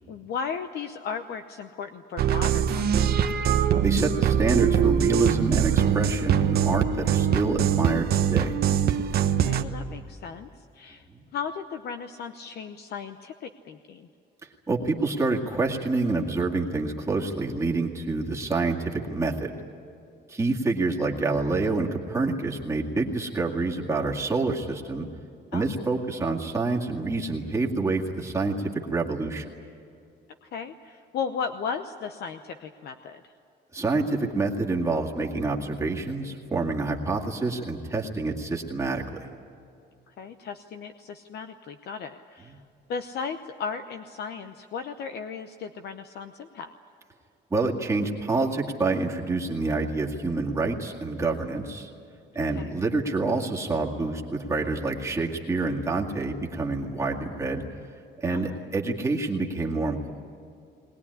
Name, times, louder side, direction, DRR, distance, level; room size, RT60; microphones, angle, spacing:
voice 1, 0.1-3.0 9.5-11.0 11.3-14.1 25.5-25.9 30.4-33.3 40.1-42.6 42.9-46.7 52.5-52.7 58.3-58.6, left 6 dB, 60° left, 8 dB, 0.8 m, -36 dB
sound 1, 2.2-9.6, right 8 dB, 55° right, 1.1 m, -22 dB
voice 2, 3.8-8.6 11.1-11.2 14.7-19.5 20.3-25.1 25.5-29.5 33.7-39.2 47.5-51.9 52.3-57.6 58.2-60.1, right 3 dB, 15° right, -1 dB, 2.0 m, -27 dB
20.5 x 20.0 x 9.8 m, 2.5 s
cardioid pair, 155°, 19 cm